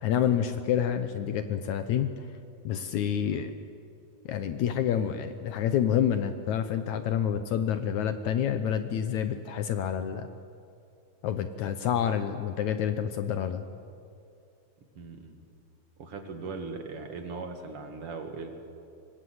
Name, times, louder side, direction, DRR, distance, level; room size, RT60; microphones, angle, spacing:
voice 1, 0.0-2.1 2.6-3.5 4.3-10.3 11.2-13.6, left 9 dB, 70° left, 9 dB, 1.8 m, -28 dB
voice 2, 15.0-15.4 16.0-18.5, right 4 dB, 45° right, 5 dB, 2.4 m, -39 dB
25.0 x 20.5 x 7.9 m, 2.5 s
omnidirectional pair, 4.2 m